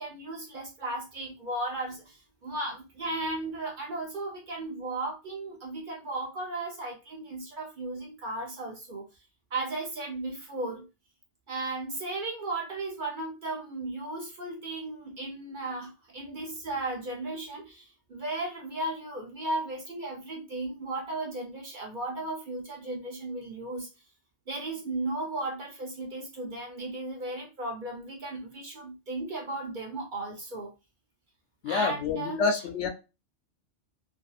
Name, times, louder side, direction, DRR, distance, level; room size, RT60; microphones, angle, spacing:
voice 1, 0.0-9.0 9.5-10.9 11.5-23.9 24.5-30.7 31.6-32.6, right 2 dB, 50° right, 0.7 m, -35 dB
voice 2, 31.6-32.9, left 4 dB, 75° left, 0.9 m, -28 dB
2.7 x 2.6 x 2.3 m
omnidirectional pair, 1.2 m